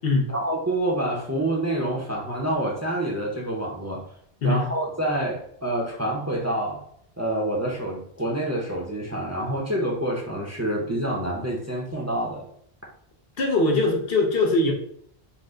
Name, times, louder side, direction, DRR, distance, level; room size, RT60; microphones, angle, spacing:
voice 1, 0.3-4.1 4.4-6.8 7.2-12.4, right 1 dB, 15° right, -2 dB, 0.7 m, -27 dB
voice 2, 13.4-14.7, left 2 dB, 65° left, 2 dB, 0.9 m, -21 dB
4.3 x 2.1 x 3.7 m, 0.64 s
omnidirectional pair, 1.1 m